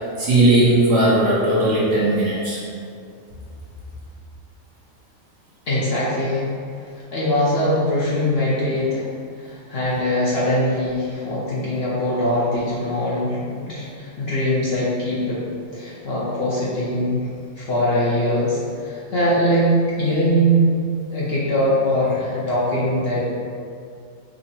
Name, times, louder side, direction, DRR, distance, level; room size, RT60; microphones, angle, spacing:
voice 1, 0.2-2.6, right 1 dB, 55° right, -7 dB, 0.9 m, -17 dB
voice 2, 5.7-6.4 7.1-9.1 9.4-15.4 15.7-17.3 17.6-19.7 20.0-20.7 21.1-23.2, equal, 55° left, -8 dB, 0.8 m, -22 dB
5.2 x 2.0 x 2.8 m, 2.3 s
omnidirectional pair, 1.5 m